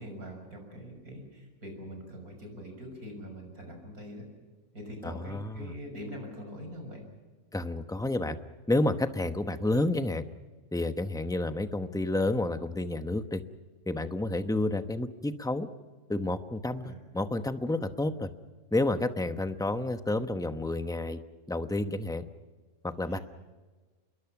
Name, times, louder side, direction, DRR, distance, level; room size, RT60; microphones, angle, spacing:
voice 1, 0.0-4.2 4.7-7.0 16.8-17.0 23.0-23.2, equal, 90° right, 3 dB, 6.7 m, -43 dB
voice 2, 5.0-5.7 7.5-8.4 8.7-10.2 10.7-13.4 13.9-15.7 16.1-18.3 18.7-21.2 21.5-22.2 22.8-23.2, left 2 dB, 5° left, 9 dB, 0.8 m, -30 dB
27.5 x 22.5 x 6.0 m, 1.3 s
omnidirectional pair, 1.5 m